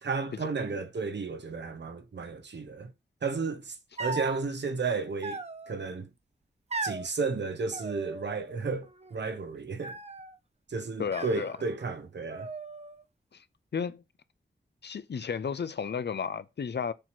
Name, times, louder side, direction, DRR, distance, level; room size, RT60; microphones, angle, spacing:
voice 1, 0.0-2.9 3.2-5.4 5.7-6.1 6.8-10.0 10.7-12.5, right 4 dB, 70° right, 1.1 m, -33 dB
sound 1, 4.0-4.4 5.2-5.9 6.7-7.1 7.7-8.5 8.8-9.4 9.8-10.4 11.1-12.0 12.3-13.0, right 3 dB, 35° right, 0.8 m, -38 dB
voice 2, 11.0-11.6 13.3-13.4 13.7-14.0 14.8-16.9, left 6 dB, 70° left, 0.6 m, -33 dB
6.7 x 3.1 x 5.9 m
wide cardioid pair, 75°, 18 cm